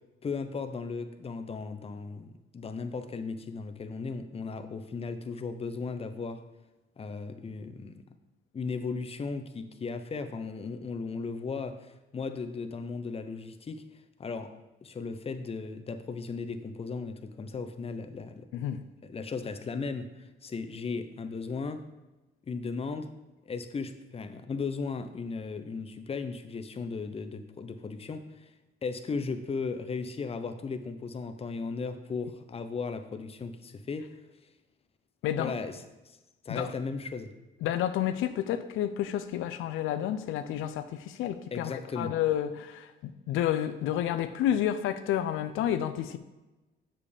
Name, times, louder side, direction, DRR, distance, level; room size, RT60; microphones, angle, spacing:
voice 1, 0.2-6.4 7.0-8.0 8.5-13.8 14.2-14.5 14.8-18.5 19.1-21.8 22.5-23.1 23.5-28.5 28.8-34.1 35.4-35.8 36.4-37.3 41.5-42.1, left 4 dB, 30° left, 0.7 m, -36 dB
voice 2, 18.5-18.8 35.2-35.5 36.5-36.7 37.6-46.2, left 11 dB, 90° left, 0.5 m, -30 dB
7.4 x 6.9 x 3.4 m
cardioid pair, 90°, 20 cm